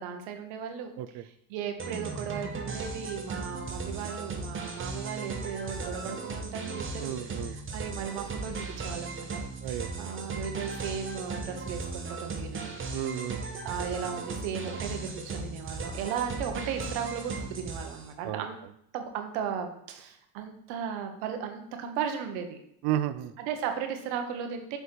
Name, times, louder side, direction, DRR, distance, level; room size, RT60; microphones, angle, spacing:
voice 1, 0.0-9.4 9.6-12.8 13.6-18.5 18.9-22.6 23.4-24.8, right 7 dB, 80° right, 5 dB, 1.2 m, -36 dB
sound 1, 1.8-18.1, right 3 dB, 30° right, 1.1 m, -37 dB
voice 2, 7.0-7.6 9.6-9.9 12.9-13.4 18.2-18.4 22.8-23.3, right 12 dB, 65° right, 14 dB, 0.6 m, -32 dB
8.0 x 3.5 x 4.4 m, 0.74 s
supercardioid pair, 85°, 43 cm